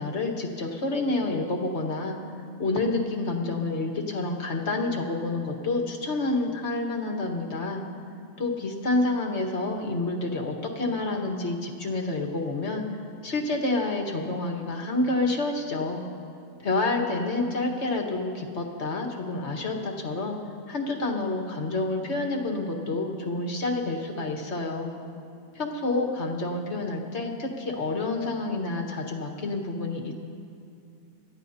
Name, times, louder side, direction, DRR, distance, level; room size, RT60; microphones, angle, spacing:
voice 1, 0.0-2.2 2.6-7.8 8.4-12.8 13.2-16.0 16.6-20.4 20.7-24.9 25.6-30.1, left 2 dB, 65° left, 1 dB, 1.8 m, -28 dB
27.0 x 13.5 x 2.8 m, 2.5 s
omnidirectional pair, 1.3 m